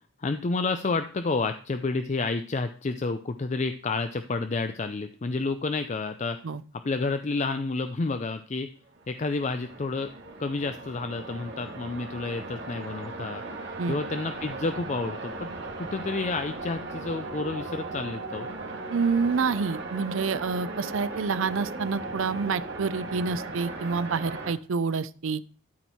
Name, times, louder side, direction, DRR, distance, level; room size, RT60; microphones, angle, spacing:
voice 1, 0.2-6.4 6.8-8.7 9.1-10.1 10.4-13.4 13.9-15.5 15.8-18.5, left 3 dB, 35° left, 9 dB, 0.4 m, -30 dB
sound 1, 8.9-24.5, right 3 dB, 55° right, 1.9 m, -37 dB
voice 2, 18.9-25.4, right 5 dB, 70° right, 16 dB, 0.5 m, -28 dB
12.5 x 4.5 x 4.3 m, 0.43 s
head